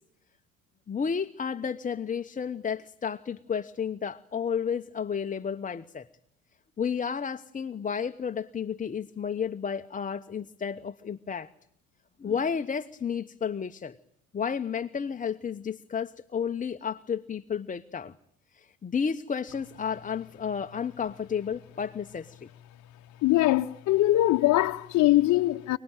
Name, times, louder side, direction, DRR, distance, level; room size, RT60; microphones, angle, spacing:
voice 1, 0.9-6.1 6.8-11.5 12.2-14.0 14.3-18.1 18.5-22.5, left 7 dB, 20° left, 1.0 m, -32 dB
voice 2, 23.2-25.8, left 16 dB, 45° left, 1.0 m, -22 dB
29.0 x 20.0 x 9.1 m
hypercardioid pair, 65°, 40 cm